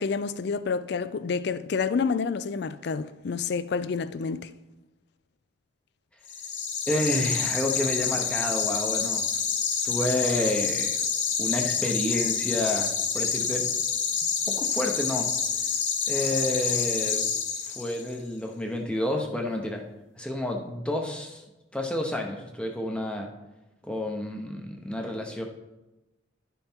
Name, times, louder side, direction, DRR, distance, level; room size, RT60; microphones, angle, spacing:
voice 1, 0.0-4.5, left 5 dB, 55° left, 0.4 m, -29 dB
sound 1, 6.3-18.1, left 6 dB, 70° left, 1.1 m, -28 dB
voice 2, 6.9-9.3 9.8-11.0 11.4-13.6 14.5-15.3 16.1-17.3 17.8-19.8 20.2-21.4 21.7-23.3 23.8-25.4, left 1 dB, 5° left, 0.7 m, -29 dB
11.0 x 5.4 x 4.4 m
head